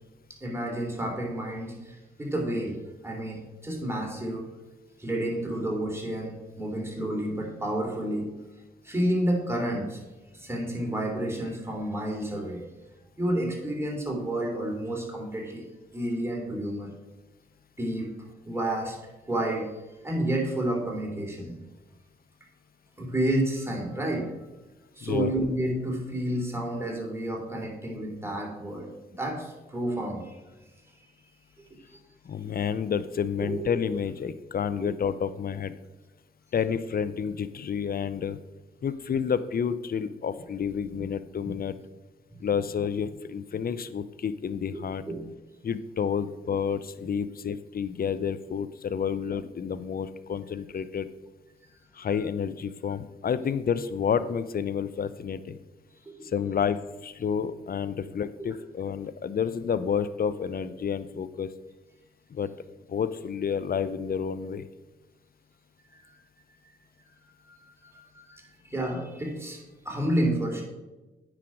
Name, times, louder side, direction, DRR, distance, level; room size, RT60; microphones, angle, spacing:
voice 1, 0.4-4.5 5.0-8.3 8.8-10.0 10.3-12.6 13.2-15.7 15.9-16.9 17.8-19.0 19.3-19.7 20.0-21.5 23.0-24.3 24.9-28.9 29.2-30.3 31.9-32.0 33.4-33.6 34.8-34.9 44.7-44.8 45.1-45.2 56.0-56.1 57.9-58.0 58.4-58.5 67.4-69.6 69.8-70.6, right 1 dB, 10° right, -1 dB, 3.1 m, -30 dB
voice 2, 25.0-25.3 32.2-35.7 36.5-38.4 38.8-41.7 42.4-45.0 45.6-51.1 51.9-55.6 56.2-61.5 62.3-62.5 62.9-64.7, left 7 dB, 45° left, 14 dB, 0.6 m, -30 dB
9.4 x 5.0 x 4.8 m, 1.1 s
supercardioid pair, 40°, 21 cm